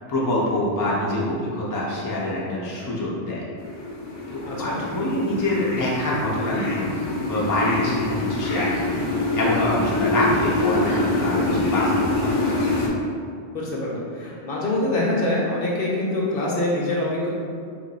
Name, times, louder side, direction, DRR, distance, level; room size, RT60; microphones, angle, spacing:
voice 1, 0.1-3.4 4.3-12.3, left 1 dB, 30° left, -6 dB, 0.3 m, -25 dB
sound 1, 3.6-12.9, left 2 dB, 80° left, 1.0 m, -25 dB
voice 2, 4.5-4.8 13.5-17.3, left 1 dB, 55° left, -4 dB, 0.7 m, -25 dB
2.8 x 2.5 x 4.0 m, 2.3 s
omnidirectional pair, 1.3 m